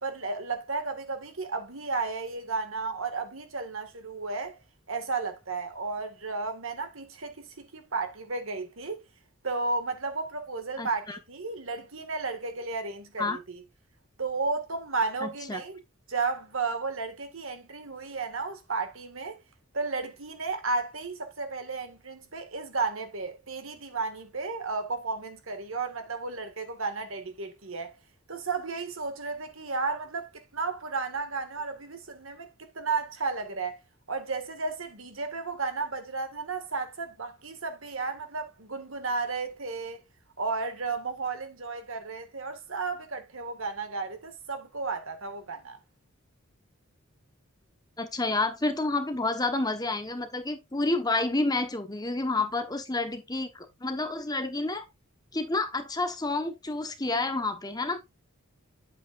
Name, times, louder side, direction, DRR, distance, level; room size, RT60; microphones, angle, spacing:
voice 1, 0.0-4.6 4.9-9.0 9.4-13.6 14.2-15.8 16.1-19.4 19.7-28.0 28.3-33.8 34.1-40.0 40.4-45.8, right 4 dB, 70° right, 1.8 m, -33 dB
voice 2, 10.8-11.2 13.2-13.4 15.2-15.6 48.0-54.8 55.3-58.0, left 2 dB, 20° left, 1.1 m, -29 dB
8.6 x 7.9 x 2.5 m
head